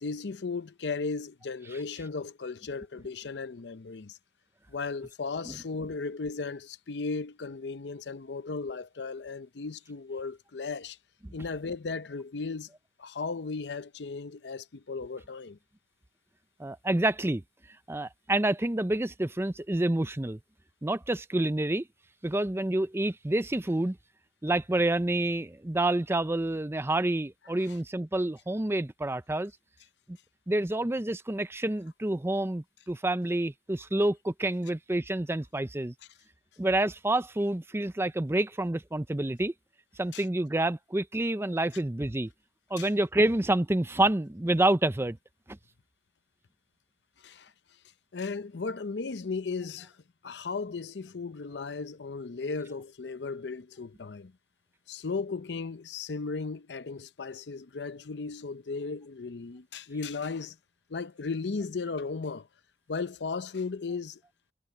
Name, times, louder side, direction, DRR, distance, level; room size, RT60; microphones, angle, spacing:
voice 1, 0.0-4.2 4.7-11.0 11.3-12.7 13.0-15.6 40.1-40.2 42.8-42.9 47.2-47.5 48.1-49.9 50.2-54.3 54.9-60.6 60.9-62.5 62.9-64.2, left 4 dB, 75° left, 0.6 m, -36 dB
voice 2, 16.6-17.4 17.9-20.4 20.8-21.8 22.2-24.0 24.4-29.5 30.5-35.9 36.6-39.5 40.0-42.3 42.7-45.2 45.5-45.6, right 1 dB, 15° right, 0.6 m, -28 dB
head